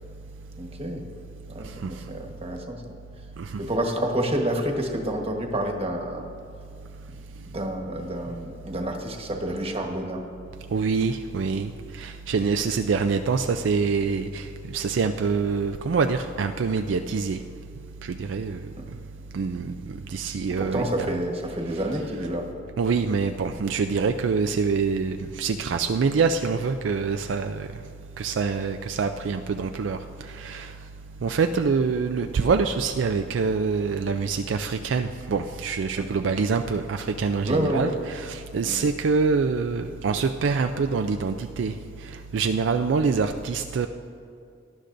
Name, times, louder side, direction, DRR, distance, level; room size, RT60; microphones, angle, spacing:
voice 1, 0.6-1.0 1.5-2.9 3.6-6.3 7.5-10.3 18.8-18.9 20.5-22.5 35.9-36.2 37.4-37.9 38.6-38.8, right 1 dB, 30° right, 2 dB, 1.3 m, -29 dB
voice 2, 10.7-11.7 12.0-14.5 14.7-17.4 18.1-18.6 19.3-19.7 20.1-20.8 22.8-27.7 28.2-30.0 30.4-30.7 31.2-41.7 42.3-43.9, right 5 dB, 70° right, 6 dB, 0.4 m, -25 dB
18.5 x 11.5 x 2.6 m, 2.4 s
head